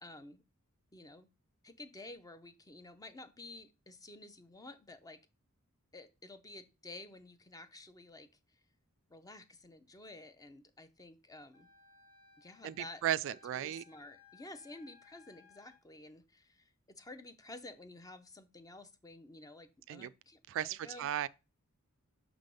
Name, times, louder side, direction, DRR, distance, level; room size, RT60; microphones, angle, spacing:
voice 1, 0.0-0.4 0.9-1.3 1.6-5.2 5.9-8.3 9.1-11.7 12.4-13.0 13.5-21.1, left 2 dB, 15° left, 0.6 m, -52 dB
Wind instrument woodwind instrument, 11.5-15.8, left 4 dB, 70° left, 1.2 m, -63 dB
voice 2, 12.6-13.8 19.9-20.1 20.5-21.3, right 11 dB, 60° right, 0.3 m, -35 dB
6.0 x 3.5 x 5.2 m
head